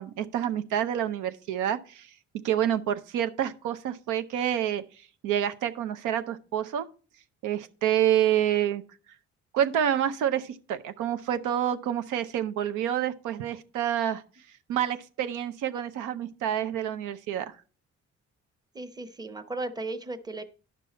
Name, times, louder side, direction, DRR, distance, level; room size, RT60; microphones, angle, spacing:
voice 1, 0.0-2.1 2.4-4.8 5.2-6.9 7.4-8.8 9.5-14.2 14.7-17.5, right 10 dB, 85° right, 0.6 m, -28 dB
voice 2, 18.7-20.4, right 2 dB, 15° right, 0.8 m, -35 dB
10.0 x 5.4 x 4.2 m
cardioid pair, 90°, 30 cm